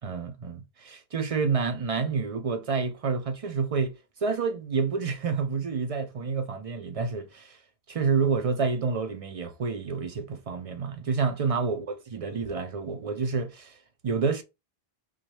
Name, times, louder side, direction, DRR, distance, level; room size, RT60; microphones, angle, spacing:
voice 1, 0.0-7.6 7.9-11.9 12.1-13.8 14.0-14.4, right 5 dB, 45° right, 0.5 m, -28 dB
3.9 x 3.0 x 3.2 m
omnidirectional pair, 1.0 m